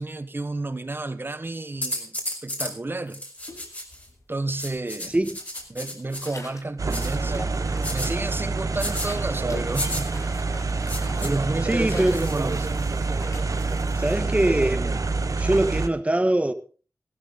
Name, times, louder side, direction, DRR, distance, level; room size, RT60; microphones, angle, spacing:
voice 1, 0.0-3.2 4.3-5.1 5.7-7.6 7.9-10.1 10.4-12.8, right 2 dB, 35° right, 1.4 m, -31 dB
sound 1, 1.8-2.7 3.1-4.1 4.6-6.3 6.9-7.1 7.8-8.1 8.8-9.1 9.7-10.0 10.9-11.3 12.1-13.0 13.6-14.1, left 1 dB, 25° left, 4.9 m, -33 dB
sound 2, 3.4-4.2 4.6-6.8 7.2-8.1 8.4-14.1, left 2 dB, 60° left, 3.4 m, -45 dB
sound 3, 6.8-15.9, right 3 dB, 70° right, 1.2 m, -27 dB
voice 2, 11.6-12.2 14.0-15.0 15.4-16.5, right 1 dB, 20° right, 1.4 m, -22 dB
16.0 x 13.5 x 4.0 m
wide cardioid pair, 55°, 6 cm